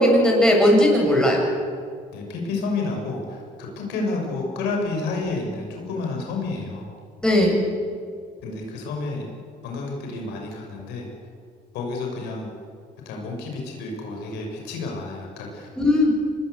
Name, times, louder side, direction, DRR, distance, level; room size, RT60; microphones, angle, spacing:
voice 1, 0.0-1.4 7.2-7.5 15.8-16.1, left 1 dB, 5° left, -1 dB, 7.5 m, -17 dB
voice 2, 2.1-6.9 8.4-9.3 9.6-11.1 11.7-12.5 13.0-15.7, left 3 dB, 90° left, 1 dB, 6.3 m, -30 dB
25.5 x 21.0 x 8.2 m, 2.2 s
cardioid pair, 110°, 17 cm